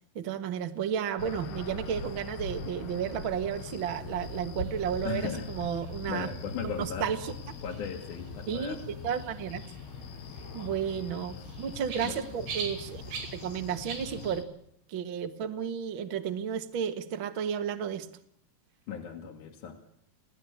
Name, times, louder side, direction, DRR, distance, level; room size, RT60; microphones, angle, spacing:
voice 1, 0.1-6.3 6.6-7.2 8.5-8.8 9.0-9.6 10.5-13.0 13.3-14.5 14.9-18.1, right 8 dB, 55° right, 7 dB, 1.4 m, -32 dB
sound 1, 1.2-14.4, left 4 dB, 75° left, 3.8 m, -42 dB
sound 2, 4.1-14.4, right 5 dB, 85° right, 6.3 m, -46 dB
voice 2, 5.0-7.2 7.6-8.8 11.4-11.5 12.0-12.3 18.9-19.8, left 6 dB, 55° left, 1 dB, 3.2 m, -37 dB
29.5 x 17.5 x 8.6 m, 0.75 s
omnidirectional pair, 4.7 m